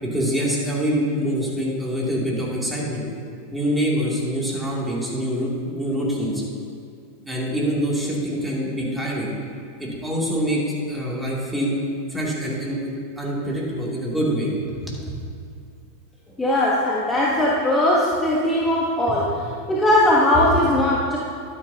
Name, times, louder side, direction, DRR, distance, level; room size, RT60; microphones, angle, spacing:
voice 1, 0.0-3.0 3.5-6.4 7.2-9.3 9.8-10.6 10.9-11.7 12.1-15.2, equal, 10° right, -5 dB, 2.7 m, -25 dB
voice 2, 16.4-21.2, left 1 dB, 10° left, -5 dB, 1.2 m, -19 dB
12.0 x 9.7 x 2.8 m, 2.3 s
figure-of-eight pair, 90°, 0 cm